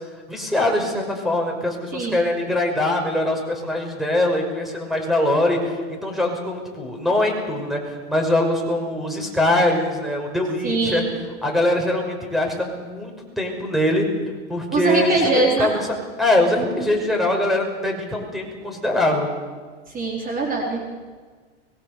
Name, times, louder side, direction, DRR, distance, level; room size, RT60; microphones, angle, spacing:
voice 1, 0.3-11.0 11.4-14.1 14.5-15.7 16.2-19.3, left 1 dB, ahead, 2 dB, 5.7 m, -22 dB
voice 2, 10.6-11.2 14.7-15.7 19.9-20.9, right 3 dB, 25° right, 0 dB, 4.1 m, -22 dB
24.5 x 22.0 x 6.9 m, 1.5 s
hypercardioid pair, 115°, 34 cm